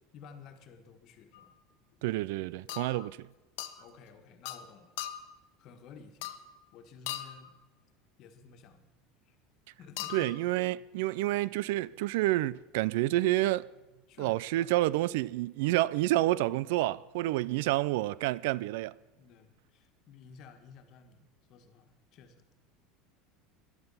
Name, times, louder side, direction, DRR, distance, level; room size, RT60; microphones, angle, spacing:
voice 1, 0.1-1.5 3.8-5.0 5.6-6.4 6.7-7.5 8.2-8.9 9.2-9.4 9.8-10.3 14.1-14.7 19.2-22.4, left 6 dB, 50° left, 1.6 m, -53 dB
sound 1, 1.3-1.5 2.7-3.1 3.6-3.8 4.4-4.7 5.0-5.4 6.2-6.6 7.1-7.5 10.0-10.4, left 13 dB, 75° left, 0.8 m, -39 dB
voice 2, 2.0-3.3 10.1-13.7 14.2-18.9, right 17 dB, 75° right, 0.3 m, -29 dB
13.5 x 11.0 x 5.6 m
supercardioid pair, 125°, 0 cm